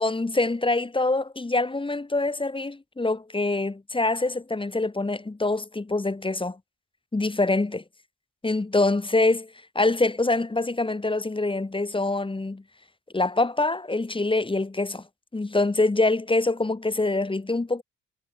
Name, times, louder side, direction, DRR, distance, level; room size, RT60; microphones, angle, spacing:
voice 1, 0.0-6.6 7.1-7.8 8.4-9.5 9.7-12.6 13.1-15.0 15.3-17.8, left 2 dB, 15° left, 1.0 m, -25 dB
hypercardioid pair, 40°, 39 cm